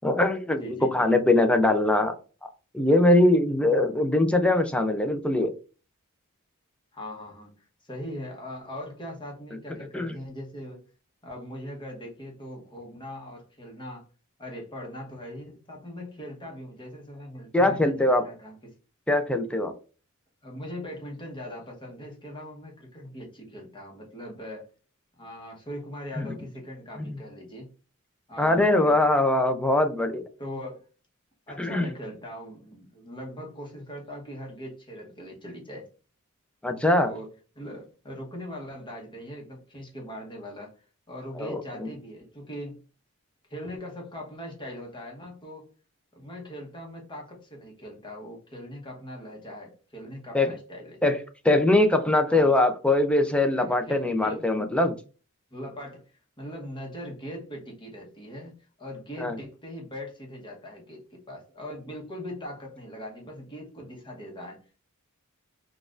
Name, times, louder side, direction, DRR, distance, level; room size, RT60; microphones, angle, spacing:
voice 1, 0.0-2.1 2.7-5.5 9.9-10.1 17.5-18.2 19.1-19.7 26.2-26.3 27.0-27.2 28.4-30.2 31.6-31.9 36.6-37.1 41.4-41.6 50.3-50.5 51.0-51.2 51.4-55.0 59.2-59.3, left 2 dB, 5° left, 6 dB, 0.4 m, -22 dB
voice 2, 0.6-1.1 6.9-10.9 11.2-14.1 14.4-18.7 20.4-24.7 25.2-27.7 28.3-29.1 30.4-30.9 31.5-35.9 37.0-40.8 41.1-42.8 43.5-45.7 46.1-51.0 52.3-52.5 53.6-54.5 55.5-56.0 56.4-64.8, equal, 20° left, -1 dB, 1.0 m, -40 dB
4.1 x 2.3 x 2.4 m, 0.36 s
head